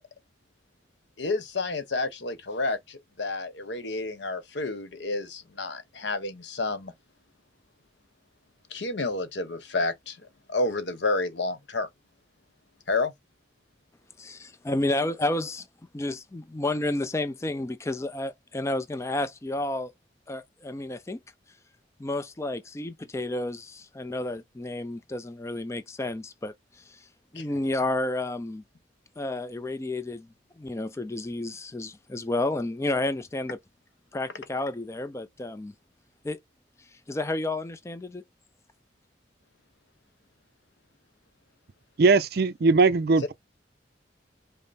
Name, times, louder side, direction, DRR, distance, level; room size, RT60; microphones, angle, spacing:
voice 1, 1.2-6.9 8.7-11.9 12.9-13.1 27.3-27.5, left 3 dB, 75° left, 0.9 m, -30 dB
voice 2, 14.2-15.7 15.9-19.9 20.3-21.2 22.0-27.1 27.3-28.6 29.2-30.3 30.6-33.6 34.1-35.7 36.2-36.4 37.1-38.2, left 2 dB, 15° left, 0.3 m, -31 dB
voice 3, 42.0-43.3, right 4 dB, 55° right, 0.4 m, -20 dB
5.4 x 2.0 x 4.0 m
head